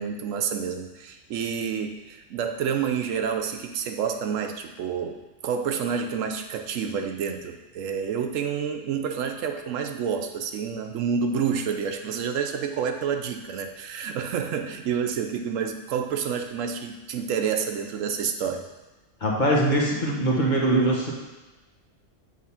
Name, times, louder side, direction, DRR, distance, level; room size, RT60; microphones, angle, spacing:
voice 1, 0.0-5.2 5.4-18.6, right 7 dB, 80° right, 5 dB, 1.0 m, -29 dB
voice 2, 19.2-21.1, right 1 dB, 40° left, -3 dB, 1.3 m, -22 dB
7.6 x 3.4 x 5.6 m, 1.2 s
omnidirectional pair, 1.3 m